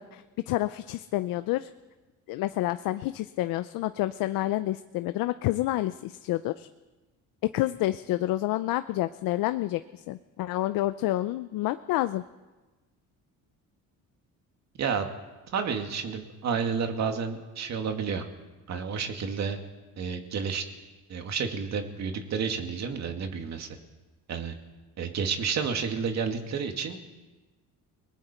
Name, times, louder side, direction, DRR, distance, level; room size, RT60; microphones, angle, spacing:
voice 1, 0.0-1.7 2.3-6.7 7.4-12.2, left 16 dB, 90° left, 12 dB, 0.6 m, -29 dB
voice 2, 15.5-18.2 18.7-19.6 20.0-20.6 21.1-23.7 24.3-24.5 25.0-27.1, right 6 dB, 55° right, 4 dB, 2.3 m, -30 dB
29.5 x 20.0 x 4.4 m, 1.2 s
cardioid pair, 140°, 33 cm